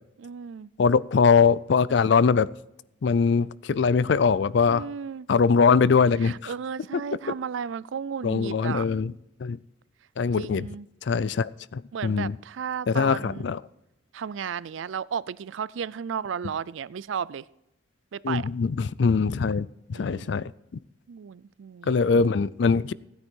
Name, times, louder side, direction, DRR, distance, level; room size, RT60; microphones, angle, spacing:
voice 1, 0.2-0.7 4.7-5.3 6.2-8.9 10.4-10.9 11.9-13.5 14.1-17.5 18.1-18.5 19.9-20.3 21.1-22.0, right 7 dB, 70° right, 0.4 m, -34 dB
voice 2, 0.8-2.5 3.0-4.8 5.3-6.5 8.2-9.1 9.4-9.6 10.2-10.7 11.0-12.4 12.9-13.6 18.2-20.5 21.9-22.9, left 5 dB, 60° left, 0.4 m, -22 dB
15.5 x 9.6 x 4.5 m
head